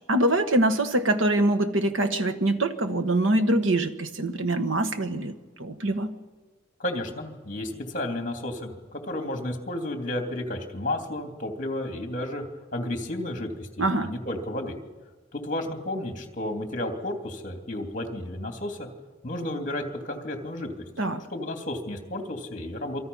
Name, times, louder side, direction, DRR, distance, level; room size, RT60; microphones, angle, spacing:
voice 1, 0.1-5.3 5.6-6.1 13.8-14.1 21.0-21.2, right 1 dB, 85° right, 7 dB, 1.5 m, -24 dB
voice 2, 6.8-12.4 12.7-14.8 15.3-18.9 19.2-20.7 21.3-23.0, left 1 dB, 40° left, 3 dB, 2.9 m, -32 dB
27.5 x 25.0 x 5.6 m, 1.3 s
head